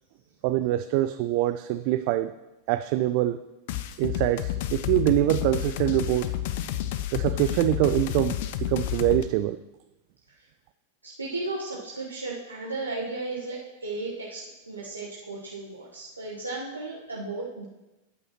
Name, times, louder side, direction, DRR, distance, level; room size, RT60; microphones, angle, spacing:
voice 1, 0.4-2.3 2.7-3.4 4.0-6.4 7.1-9.6, right 14 dB, 45° right, 12 dB, 0.3 m, -24 dB
sound 1, 3.7-9.2, left 13 dB, 50° left, 0.5 m, -30 dB
voice 2, 11.0-17.6, right 3 dB, 80° right, -4 dB, 1.1 m, -35 dB
12.5 x 8.7 x 3.0 m, 1.0 s
figure-of-eight pair, 90°, 0 cm